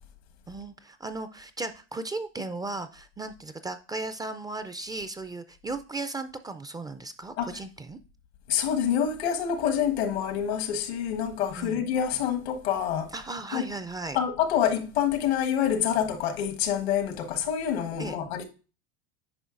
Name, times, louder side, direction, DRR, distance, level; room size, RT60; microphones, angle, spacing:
voice 1, 0.5-8.0 11.6-11.8 13.1-14.2 18.0-18.2, right 3 dB, 10° right, 0.4 m, -36 dB
voice 2, 8.5-13.1 13.5-13.6 14.1-18.4, left 9 dB, 80° left, 1.4 m, -27 dB
9.3 x 5.4 x 2.5 m
hypercardioid pair, 100°, 31 cm